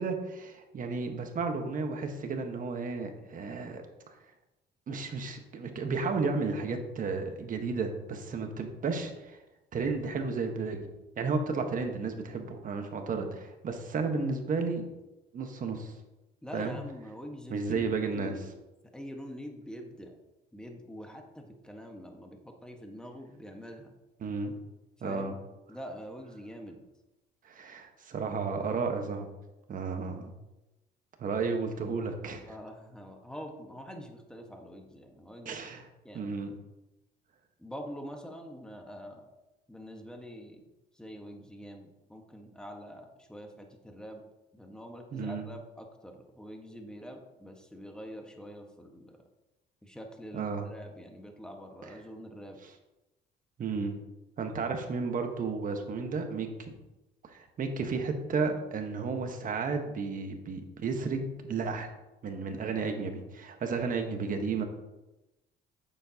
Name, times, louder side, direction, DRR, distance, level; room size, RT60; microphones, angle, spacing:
voice 1, 0.0-3.8 4.9-9.4 9.7-10.8 11.2-14.9 15.3-15.9 16.5-16.8 17.5-18.3 24.2-24.5 25.0-25.3 27.4-29.3 29.7-30.3 31.2-32.4 35.4-35.8 36.1-36.5 45.1-45.4 50.3-50.6 52.6-52.7 53.6-53.9 54.4-56.7 57.2-61.9 62.2-64.6, right 4 dB, 45° right, 5 dB, 1.3 m, -33 dB
voice 2, 16.4-18.5 18.9-20.2 20.5-23.9 25.0-25.4 25.7-26.8 32.4-35.7 36.0-36.3 37.6-39.3 39.7-40.7 40.9-44.2 44.5-49.2 49.8-52.6, equal, 5° left, 3 dB, 1.4 m, -45 dB
8.6 x 7.1 x 2.9 m, 1.0 s
cardioid pair, 90°, 18 cm